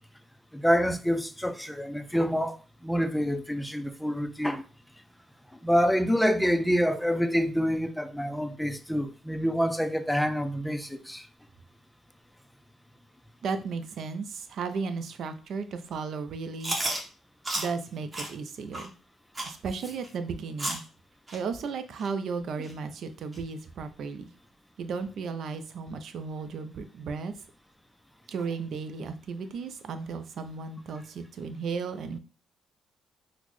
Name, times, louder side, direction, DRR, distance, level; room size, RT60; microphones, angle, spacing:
voice 1, 0.5-4.6 5.6-11.3, equal, 5° left, 0.4 m, -27 dB
voice 2, 13.4-16.8 17.6-18.9 19.4-20.8 21.3-24.3 24.8-27.3 28.3-32.2, right 5 dB, 65° right, 0.4 m, -35 dB
Chewing mastication, 16.6-17.0 17.4-17.7 18.1-18.3 18.7-18.9 19.3-19.5 20.0-20.1 20.6-20.8 21.3-21.4 22.0-22.1 22.6-22.7 23.3-23.4, right 1 dB, 25° right, 1.0 m, -31 dB
4.0 x 2.1 x 3.0 m
cardioid pair, 90°, 0 cm